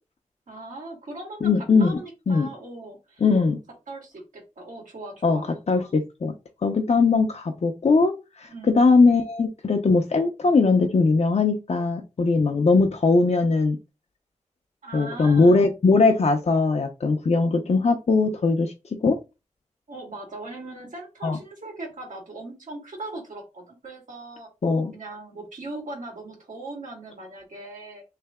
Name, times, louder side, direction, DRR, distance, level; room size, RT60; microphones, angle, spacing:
voice 1, 0.5-3.2 3.9-5.5 8.5-8.8 14.8-15.7 19.9-24.5 24.9-28.0, right 2 dB, 85° right, 1.7 m, -39 dB
voice 2, 1.4-2.0 2.3-2.5 3.2-3.6 5.2-5.4 5.7-6.3 6.6-8.1 8.4-8.5 8.7-13.8 14.9-18.7 19.0-19.2 21.2-21.4 24.6-24.9, left 3 dB, 55° left, 0.6 m, -20 dB
3.3 x 2.7 x 3.5 m
wide cardioid pair, 80°, 13 cm